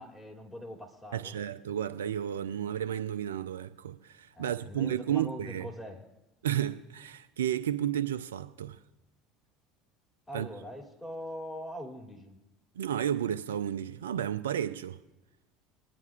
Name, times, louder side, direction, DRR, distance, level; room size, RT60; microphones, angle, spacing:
voice 1, 0.0-1.4 4.3-6.0 10.3-12.4, equal, 10° left, 2.7 m, -42 dB
voice 2, 1.1-5.7 6.4-8.8 10.3-10.5 12.8-15.0, right 10 dB, 85° right, 0.4 m, -32 dB
25.0 x 9.7 x 2.5 m
hypercardioid pair, 75°, 0 cm